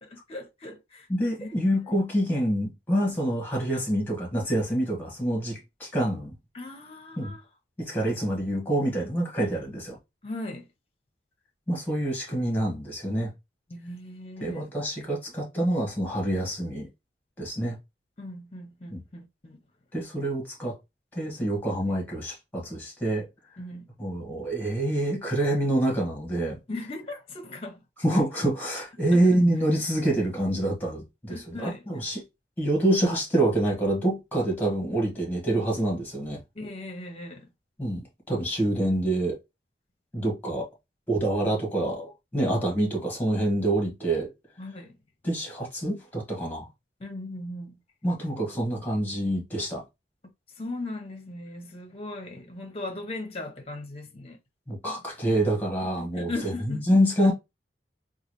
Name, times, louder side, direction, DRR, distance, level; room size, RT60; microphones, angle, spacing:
voice 1, 0.0-1.1 1.4-1.5 6.5-7.4 10.2-10.7 13.7-14.7 18.2-19.6 23.6-23.9 26.7-27.8 29.1-29.2 31.3-32.1 36.5-37.5 44.6-44.9 47.0-47.8 50.6-54.4 54.8-55.0 56.0-56.8 57.2-57.3, left 2 dB, 35° left, 0.8 m, -38 dB
voice 2, 1.1-6.3 7.2-7.3 7.8-10.0 11.7-13.3 14.4-16.9 17.4-17.8 18.9-19.0 19.9-20.7 21.1-23.3 24.0-26.6 28.0-32.2 32.6-36.4 37.8-39.4 40.1-40.7 41.1-44.3 45.2-46.7 48.0-49.8 54.7-56.3 56.7-57.3, right 1 dB, 10° left, 1.4 m, -26 dB
3.9 x 2.4 x 3.0 m
head